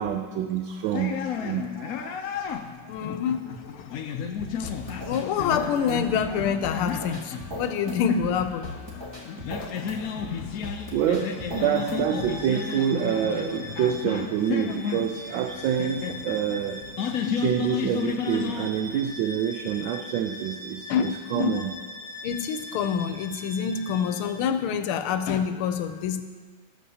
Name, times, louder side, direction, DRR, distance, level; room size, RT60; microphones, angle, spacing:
voice 1, 0.0-2.3 10.9-16.8 17.3-21.7, right 9 dB, 75° right, 5 dB, 1.2 m, -27 dB
sound 1, 0.9-19.1, left 7 dB, 70° left, 0.8 m, -33 dB
voice 2, 2.9-4.2 4.5-9.1 15.8-16.0 17.2-17.4 20.9-21.6 22.2-26.2, left 7 dB, 85° left, 9 dB, 1.5 m, -27 dB
sound 2, 4.4-12.4, left 1 dB, 15° right, 1.2 m, -39 dB
Bowed string instrument, 10.7-24.5, left 1 dB, 20° left, 1.1 m, -42 dB
17.5 x 7.4 x 2.8 m, 1.5 s
omnidirectional pair, 2.3 m